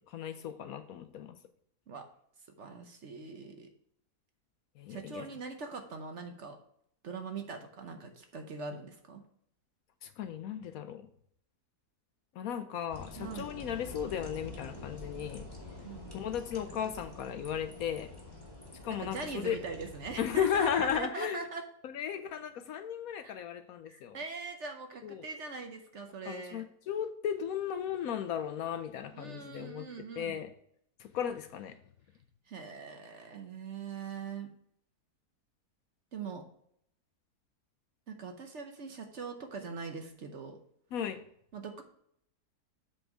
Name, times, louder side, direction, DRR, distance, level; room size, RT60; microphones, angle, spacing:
voice 1, 0.1-1.4 4.8-5.3 10.0-11.1 12.3-15.5 16.1-18.1 18.8-19.6 20.2-21.4 21.8-24.2 25.0-25.2 26.3-29.9 30.2-30.5 31.0-31.8 40.9-41.2, left 9 dB, 70° left, 10 dB, 0.9 m, -35 dB
voice 2, 2.6-3.7 4.9-6.6 7.0-9.2 13.2-13.5 15.8-16.2 18.9-21.6 23.2-23.3 23.9-26.6 29.1-30.4 32.5-34.5 36.1-36.4 38.1-40.6 41.5-41.8, right 4 dB, 55° right, 5 dB, 1.0 m, -42 dB
sound 1, 12.9-21.0, left 2 dB, 15° left, 1.8 m, -47 dB
7.8 x 4.4 x 4.8 m, 0.69 s
omnidirectional pair, 1.7 m